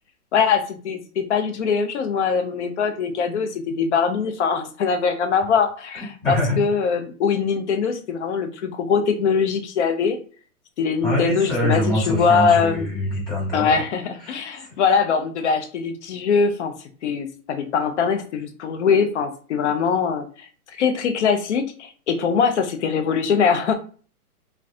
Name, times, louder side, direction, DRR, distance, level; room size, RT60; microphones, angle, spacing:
voice 1, 0.3-10.2 10.8-12.9 13.5-16.7 17.0-20.2 20.7-23.7, left 6 dB, 50° left, 7 dB, 0.5 m, -22 dB
voice 2, 6.2-6.6 11.0-13.8 14.2-14.4, left 1 dB, 10° left, -10 dB, 1.1 m, -24 dB
3.5 x 2.3 x 2.5 m, 0.40 s
hypercardioid pair, 160°, 45 cm